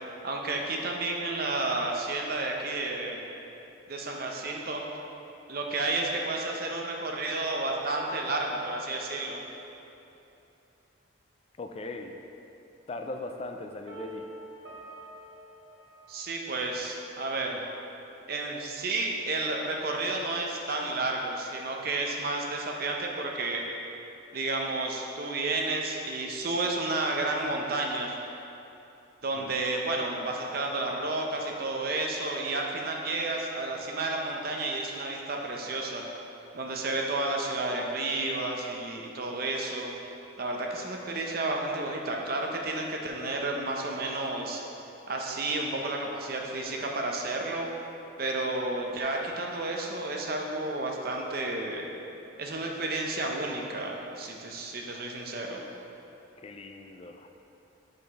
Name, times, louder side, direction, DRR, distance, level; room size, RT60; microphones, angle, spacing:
voice 1, 0.2-3.2 3.9-4.8 5.5-9.4 16.1-17.6 18.3-23.6 24.3-28.2 29.2-36.0 36.5-39.9 40.4-44.6 45.1-47.7 48.2-51.9 52.4-55.6, right 2 dB, 50° right, 0 dB, 0.6 m, -31 dB
voice 2, 11.6-12.1 12.9-14.3 29.4-29.5 56.4-57.3, left 2 dB, 30° left, 4 dB, 0.3 m, -39 dB
sound 1, 13.9-16.8, right 1 dB, 65° right, 0.9 m, -46 dB
5.6 x 5.3 x 4.0 m, 2.9 s
head